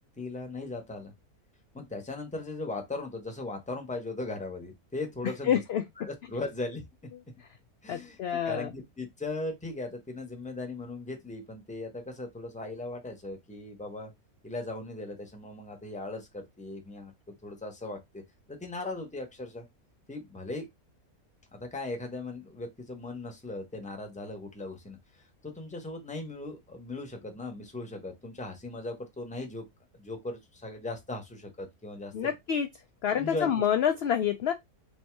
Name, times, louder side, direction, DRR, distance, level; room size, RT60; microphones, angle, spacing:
voice 1, 0.2-1.1 1.7-5.6 6.0-6.8 7.8-14.1 14.4-17.1 17.4-18.2 18.5-19.6 20.1-20.7 21.5-29.6 29.9-32.3 33.2-33.6, left 2 dB, 5° left, 0.8 m, -38 dB
voice 2, 5.5-5.8 7.9-8.7 32.1-32.7 33.0-34.5, left 9 dB, 70° left, 0.6 m, -27 dB
3.5 x 2.7 x 4.5 m
omnidirectional pair, 1.6 m